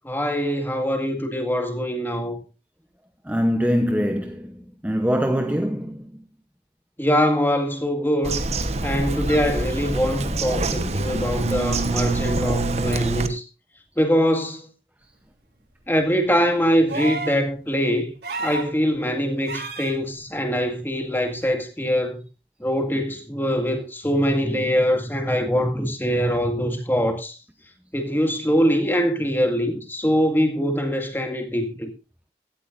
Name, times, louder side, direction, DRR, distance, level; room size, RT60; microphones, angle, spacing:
voice 1, 0.1-2.4 7.0-8.4 8.8-13.4 14.0-14.6 15.9-18.1 18.4-22.2 22.6-27.3 27.9-31.9, equal, 10° left, 2.0 m, -23 dB
voice 2, 3.3-4.5 4.8-6.0, equal, 10° right, 0.8 m, -23 dB
Bird vocalization bird call bird song, 8.2-13.3, right 2 dB, 35° right, 1.1 m, -25 dB
sound 1, 16.9-17.4 18.2-18.7 19.5-19.9 21.4-21.5, right 3 dB, 70° right, 3.6 m, -30 dB
17.0 x 13.0 x 2.6 m
head